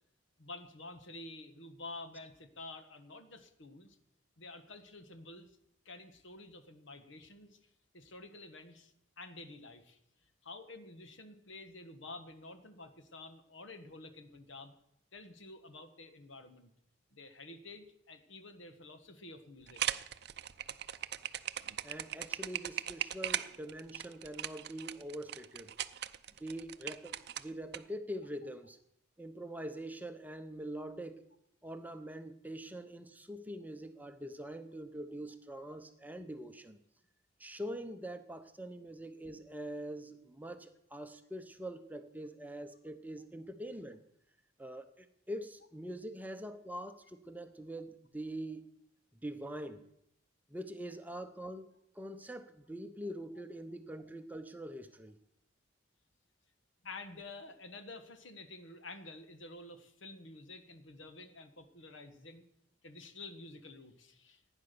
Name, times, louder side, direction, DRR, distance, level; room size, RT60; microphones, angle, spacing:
voice 1, 0.4-4.0 4.4-5.6 5.8-10.0 10.4-14.7 15.1-16.7 17.1-19.8 56.8-62.5 62.8-64.4, left 2 dB, 75° left, 8 dB, 1.4 m, -50 dB
sound 1, 19.7-27.8, right 11 dB, 55° right, 0.5 m, -38 dB
voice 2, 21.8-25.7 26.4-28.8 29.2-31.2 31.6-36.8 37.4-44.0 44.6-48.7 49.2-49.8 50.5-55.2, right 1 dB, 10° right, 8 dB, 0.7 m, -44 dB
15.0 x 9.7 x 6.8 m, 0.78 s
head